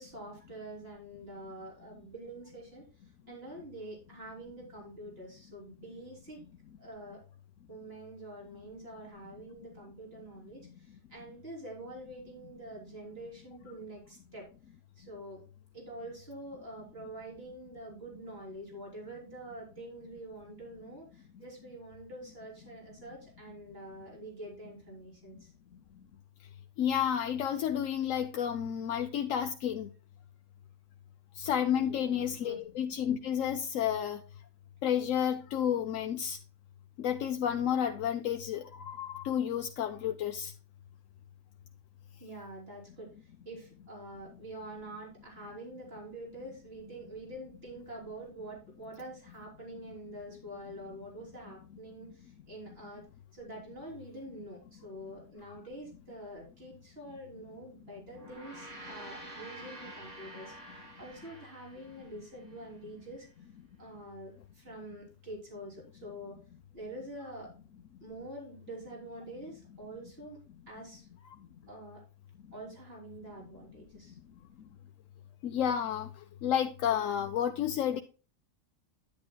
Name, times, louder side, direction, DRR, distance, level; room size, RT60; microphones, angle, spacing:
voice 1, 0.0-2.9 3.3-6.4 6.8-7.2 7.7-14.5 15.0-15.5 15.7-25.5 31.6-32.6 42.2-53.1 53.3-60.6 61.0-63.3 63.8-66.4 66.7-67.5 68.0-70.4 70.7-71.1 71.7-72.0 72.5-74.2, right 1 dB, 45° right, 3.7 m, -46 dB
voice 2, 26.8-29.9 31.4-34.2 34.8-36.4 37.0-40.5 75.4-76.1 76.4-78.0, left 9 dB, 75° left, 1.0 m, -31 dB
Gong, 58.1-62.7, right 1 dB, 65° right, 2.6 m, -48 dB
10.5 x 9.7 x 2.2 m
omnidirectional pair, 1.4 m